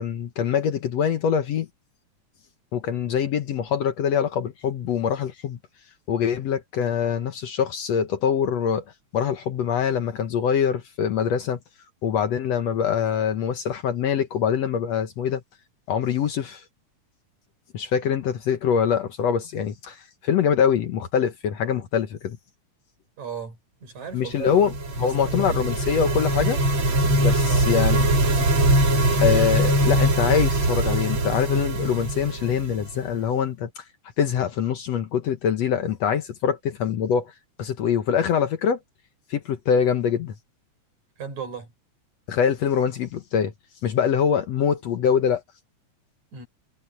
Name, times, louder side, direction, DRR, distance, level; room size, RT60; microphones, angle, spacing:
voice 1, 0.0-1.7 2.7-5.6 6.1-8.8 9.1-11.6 12.0-15.4 15.9-16.6 17.7-22.4 24.1-26.6 27.0-28.1 29.2-33.7 34.2-37.3 37.6-38.8 39.3-40.3 42.3-43.5 43.8-45.4, left 8 dB, 65° left, 2.0 m, -24 dB
voice 2, 23.2-24.5 25.0-25.6 27.5-27.7 41.2-41.7 46.3-46.5, right 7 dB, 65° right, 6.4 m, -36 dB
sound 1, 24.4-33.1, right 1 dB, 40° right, 3.2 m, -22 dB
omnidirectional pair, 3.6 m